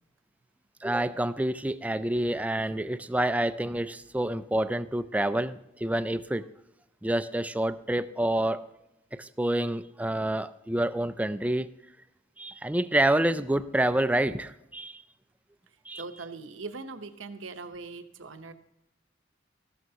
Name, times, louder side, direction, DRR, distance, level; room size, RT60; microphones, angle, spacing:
voice 1, 0.8-6.5 7.0-8.7 9.1-11.7 12.4-15.0 15.9-16.0, right 1 dB, 10° right, 13 dB, 0.3 m, -28 dB
voice 2, 16.0-18.5, right 3 dB, 85° right, 8 dB, 0.9 m, -40 dB
14.0 x 12.5 x 2.8 m, 0.91 s
head